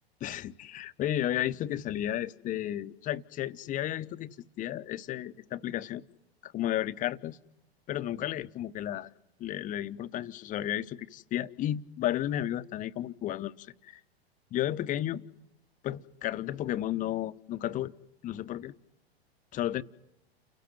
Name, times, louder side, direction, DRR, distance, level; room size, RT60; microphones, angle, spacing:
voice 1, 0.2-6.0 6.4-7.4 7.9-9.1 9.4-14.0 14.5-15.2 15.8-17.9 18.2-18.7 19.5-19.8, left 12 dB, 25° left, 13 dB, 0.8 m, -33 dB
30.0 x 17.5 x 8.0 m, 0.92 s
figure-of-eight pair, 95°, 32 cm